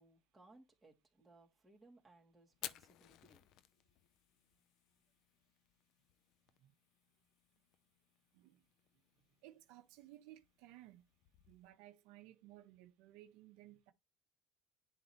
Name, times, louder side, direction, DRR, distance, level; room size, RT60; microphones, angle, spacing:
voice 1, 0.0-3.5, right 2 dB, 15° right, 3.0 m, -65 dB
Fire, 2.5-11.7, left 13 dB, 65° left, 0.7 m, -57 dB
voice 2, 9.4-11.0 11.5-13.9, right 14 dB, 85° right, 1.1 m, -59 dB
10.5 x 4.0 x 3.2 m
cardioid pair, 125°, 0 cm